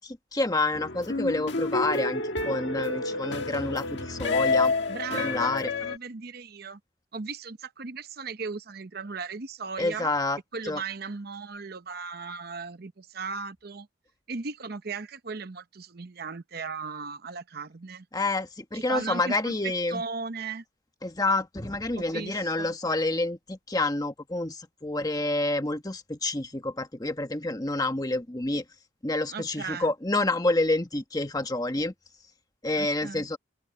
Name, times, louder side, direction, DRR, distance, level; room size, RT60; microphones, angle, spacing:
voice 1, 0.0-4.7 5.1-5.7 9.8-10.4 10.6-10.8 18.1-20.0 21.0-28.6 29.0-31.9 32.6-33.4, left 2 dB, 20° left, 1.3 m, -28 dB
sound 1, 0.7-6.0, left 3 dB, 60° left, 1.7 m, -29 dB
voice 2, 4.9-6.8 7.1-10.1 10.5-13.9 14.3-18.1 18.7-19.5 19.9-20.6 21.9-22.7 29.3-29.9 32.8-33.3, right 4 dB, 50° right, 0.8 m, -37 dB
open air
head